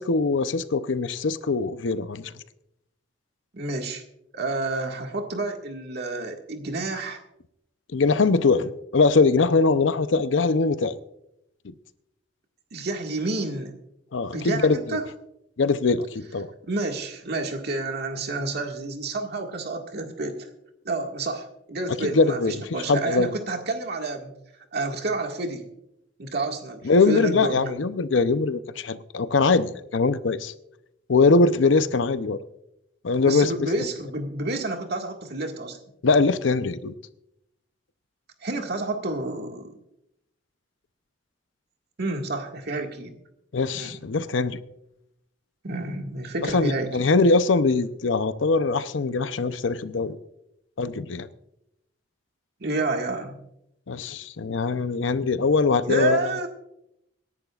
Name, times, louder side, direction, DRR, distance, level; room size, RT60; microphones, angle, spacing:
voice 1, 0.0-2.3 7.9-10.9 11.6-11.7 14.1-15.0 15.6-16.5 22.0-23.3 26.8-30.5 31.1-32.4 33.0-33.5 36.0-36.9 43.5-44.6 46.5-50.2 50.8-51.3 53.9-56.2, left 3 dB, 80° left, 13 dB, 0.6 m, -22 dB
voice 2, 3.5-4.0 4.3-7.2 12.7-13.8 14.3-15.0 16.7-20.5 20.8-24.3 24.7-25.7 26.2-27.7 33.2-35.8 38.4-39.8 42.0-43.1 43.7-44.0 45.6-47.1 52.6-53.4 55.9-56.5, right 2 dB, 60° right, 3 dB, 1.8 m, -29 dB
26.0 x 11.0 x 2.4 m, 0.83 s
head